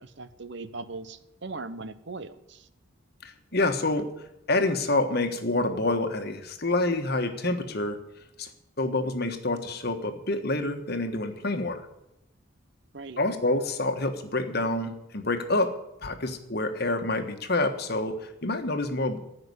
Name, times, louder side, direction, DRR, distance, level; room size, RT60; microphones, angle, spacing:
voice 1, 0.0-2.7 12.9-13.2, right 3 dB, 55° right, 12 dB, 0.8 m, -39 dB
voice 2, 3.2-4.1 4.5-8.0 8.4-8.5 8.8-11.8 13.2-15.7 16.0-19.2, left 2 dB, 50° left, 7 dB, 1.4 m, -27 dB
15.0 x 5.9 x 9.7 m, 0.86 s
head